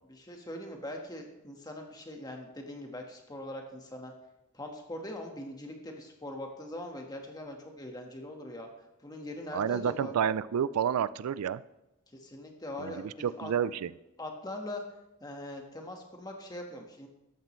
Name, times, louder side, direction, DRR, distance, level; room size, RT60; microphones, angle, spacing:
voice 1, 0.1-4.1 4.5-8.7 9.0-10.1 12.1-13.1 13.4-13.5 14.2-14.8 15.2-17.1, left 1 dB, 20° left, 2 dB, 1.4 m, -41 dB
voice 2, 9.5-11.6 12.8-13.9, right 8 dB, 90° right, 17 dB, 0.4 m, -30 dB
13.5 x 9.2 x 3.2 m, 0.93 s
head